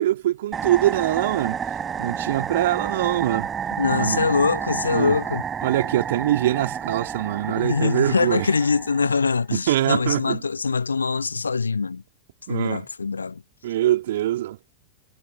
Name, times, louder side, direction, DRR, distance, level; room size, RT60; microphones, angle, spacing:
voice 1, 0.0-1.6 2.0-3.5 3.9-4.3 4.9-5.2 5.6-8.5 9.5-10.4 12.5-12.9 13.6-14.6, right 13 dB, 55° right, 3.3 m, -23 dB
sound 1, 0.5-9.3, right 7 dB, 20° right, 1.6 m, -30 dB
voice 2, 3.8-5.4 7.5-12.0 12.5-13.4, left 4 dB, 75° left, 0.6 m, -23 dB
figure-of-eight pair, 90°, 0 cm